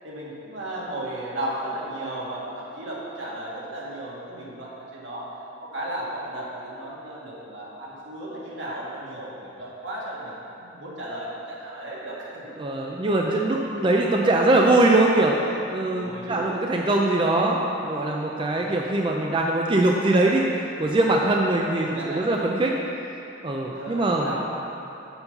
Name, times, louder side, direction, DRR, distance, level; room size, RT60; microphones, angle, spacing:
voice 1, 0.0-5.3 5.6-12.4 16.0-16.5 18.6-18.8 21.8-22.3 23.7-24.4, right 1 dB, 75° right, -6 dB, 2.0 m, -35 dB
voice 2, 12.6-15.4 15.7-20.4 20.8-22.7 23.4-24.3, right 2 dB, 25° right, -1 dB, 0.5 m, -22 dB
7.1 x 5.5 x 6.7 m, 2.9 s
head